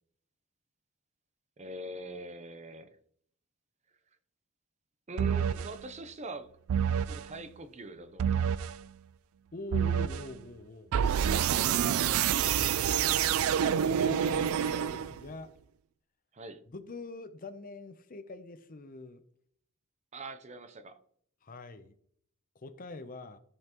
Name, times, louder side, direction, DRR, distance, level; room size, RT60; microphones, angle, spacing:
voice 1, 1.6-2.9 5.1-6.5 6.9-8.7 13.6-13.9 16.3-16.6 20.1-21.0, right 2 dB, 30° right, 10 dB, 0.7 m, -43 dB
sound 1, 5.2-5.7 6.7-7.2 8.2-8.8 9.7-10.3 10.9-15.3, right 8 dB, 70° right, 0.3 m, -27 dB
voice 2, 9.5-10.9 11.5-12.7 13.6-15.5 16.7-19.2 21.4-21.9 22.5-23.4, left 2 dB, 40° left, 11 dB, 0.6 m, -44 dB
14.0 x 5.5 x 3.0 m, 0.63 s
head